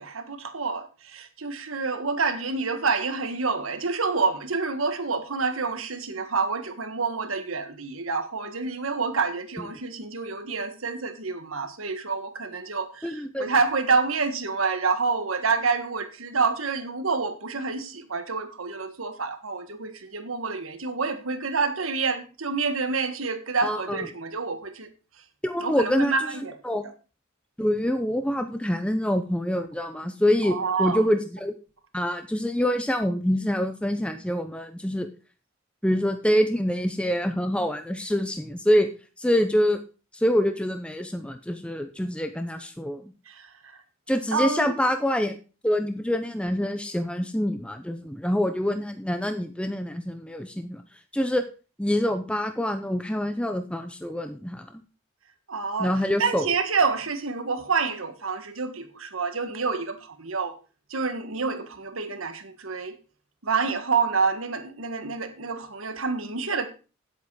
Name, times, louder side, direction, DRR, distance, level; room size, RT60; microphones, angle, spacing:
voice 1, 0.0-24.9 25.6-26.6 30.4-31.0 43.3-43.5 43.7-43.8 44.3-44.7 55.5-55.9 56.2-60.5 60.9-63.0 63.4-66.7, right 4 dB, 90° right, 1.5 m, -28 dB
voice 2, 13.0-13.5 23.6-24.0 25.4-26.3 26.6-26.8 27.6-31.5 31.9-35.1 35.8-38.9 39.2-39.8 40.1-43.1 44.1-45.4 45.6-50.8 51.1-51.4 51.8-54.6 55.8-56.5, equal, 5° left, 0.6 m, -25 dB
9.8 x 8.1 x 4.8 m
head